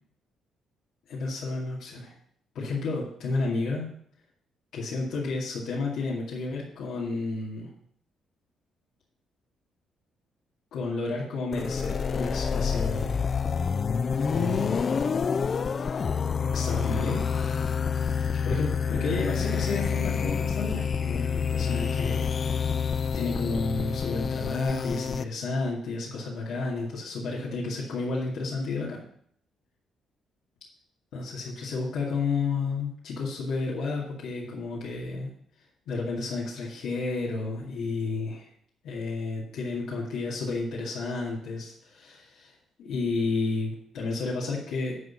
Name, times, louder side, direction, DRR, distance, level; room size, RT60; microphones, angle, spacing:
voice 1, 1.1-2.1 2.5-3.9 4.7-7.7 10.7-13.2 14.3-14.8 16.4-17.2 18.4-22.6 23.1-29.0 31.1-35.3 35.9-38.5 38.8-42.5 42.8-44.9, left 3 dB, 80° left, -5 dB, 2.2 m, -31 dB
sound 1, 11.5-25.2, left 6 dB, 45° left, 0.4 m, -28 dB
11.0 x 3.9 x 7.4 m, 0.65 s
cardioid pair, 90°, 0 cm